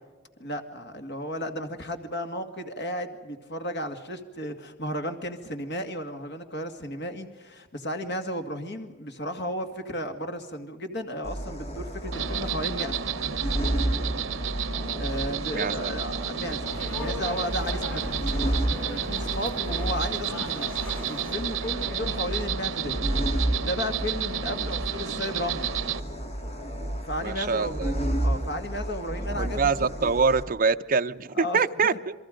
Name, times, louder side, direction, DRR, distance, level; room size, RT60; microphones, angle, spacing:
voice 1, 0.4-13.0 14.9-18.1 18.8-20.8 21.1-23.0 23.6-25.7 27.0-29.7 30.0-30.1 31.4-32.0, equal, 60° left, 6 dB, 2.1 m, -34 dB
sound 1, 11.2-30.4, right 1 dB, 35° left, 2.5 m, -32 dB
Insect, 12.1-26.0, right 9 dB, 85° right, 0.8 m, -32 dB
voice 2, 15.5-15.9 27.2-28.0 29.4-32.1, right 5 dB, 45° right, 8 dB, 0.7 m, -25 dB
sound 2, 16.7-22.1, left 2 dB, 85° left, 6.7 m, -39 dB
29.0 x 22.5 x 5.2 m, 1.3 s
head